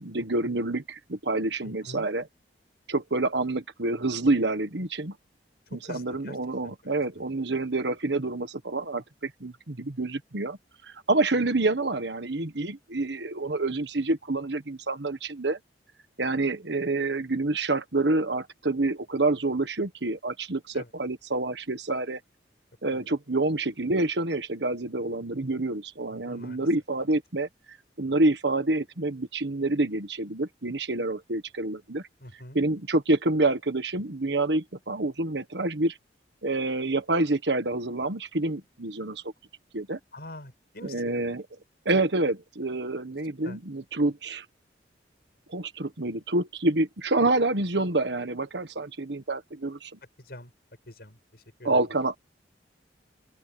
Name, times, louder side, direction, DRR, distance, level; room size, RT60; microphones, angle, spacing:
voice 1, 0.0-2.2 2.9-5.1 5.7-10.6 11.1-15.6 16.2-22.2 22.8-27.5 28.0-32.0 32.5-36.0 36.4-39.2 39.7-40.0 40.9-41.4 41.8-44.4 45.5-50.0 51.6-52.2, right 2 dB, 70° right, 1.5 m, -27 dB
voice 2, 1.6-2.1 5.7-6.4 6.6-6.8 7.1-7.2 20.7-20.9 22.9-23.1 26.1-26.7 32.2-32.6 40.1-41.2 43.4-43.6 50.2-50.5 50.9-51.8, left 1 dB, 60° left, 7.2 m, -45 dB
open air
head